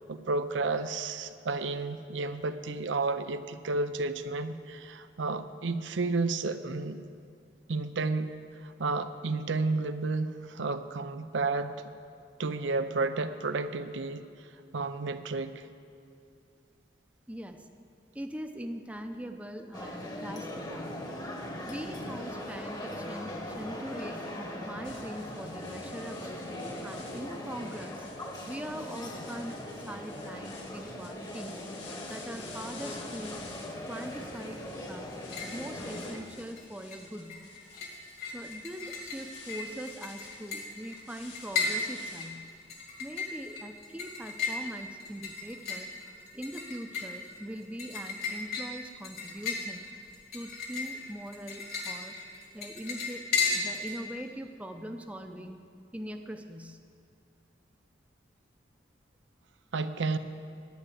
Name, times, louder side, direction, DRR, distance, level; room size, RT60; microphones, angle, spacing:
voice 1, 0.1-7.0 7.7-8.3 8.6-11.7 12.4-14.2 14.7-15.6 59.7-60.2, right 3 dB, 80° right, 10 dB, 0.6 m, -31 dB
voice 2, 17.3-17.7 18.1-21.1 21.6-26.4 26.8-28.0 28.4-31.6 32.1-33.5 33.9-35.1 35.5-37.4 38.3-42.5 43.0-45.9 46.3-49.9 50.3-52.2 52.5-55.6 55.9-56.8, right 1 dB, 5° right, 5 dB, 0.6 m, -42 dB
sound 1, 19.7-36.2, left 1 dB, 20° left, 1.2 m, -40 dB
sound 2, 24.8-42.3, left 4 dB, 75° left, 2.0 m, -51 dB
sound 3, 35.1-35.6 35.9-36.6 36.9-54.0, left 4 dB, 55° left, 2.0 m, -36 dB
10.5 x 9.4 x 7.8 m, 2.5 s
head